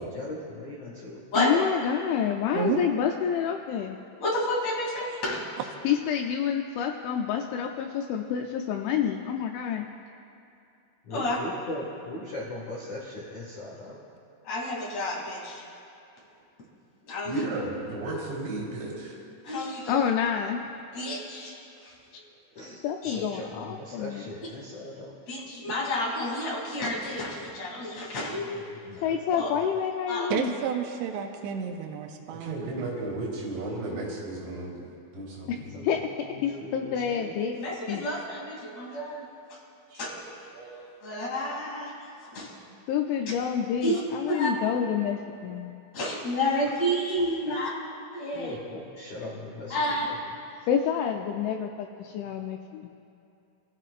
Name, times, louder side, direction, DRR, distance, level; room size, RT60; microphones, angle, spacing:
voice 1, 0.0-1.2 11.0-14.0 22.5-22.8 23.1-25.2 28.4-29.4 35.5-35.9 36.2-37.3 48.3-49.8, left 1 dB, 55° left, -5 dB, 2.1 m, -39 dB
voice 2, 1.4-4.0 5.8-9.9 19.9-20.6 22.8-24.2 29.0-30.5 35.8-37.6 37.9-38.1 42.9-45.7 47.5-47.6 50.7-52.9, left 8 dB, 80° left, 3 dB, 2.8 m, -28 dB
voice 3, 2.5-2.8 30.3-32.9, right 8 dB, 80° right, 3 dB, 2.5 m, -31 dB
voice 4, 4.2-5.5 11.1-11.4 14.4-15.6 17.1-17.4 19.4-20.0 20.9-21.5 21.8-21.9 23.0-23.3 25.3-28.7 29.4-29.5 30.1-30.3 37.5-39.2 39.5-39.6 39.9-40.1 41.0-42.5 43.8-44.0 44.3-44.5 45.9-47.7 48.1-48.6 49.7-50.1, left 1 dB, 40° left, -4 dB, 3.3 m, -30 dB
voice 5, 17.2-19.1 32.4-34.9 35.1-35.8 39.9-40.2 40.5-40.9, right 2 dB, 65° right, -3 dB, 5.7 m, -34 dB
26.5 x 14.5 x 2.5 m, 2.6 s
omnidirectional pair, 5.8 m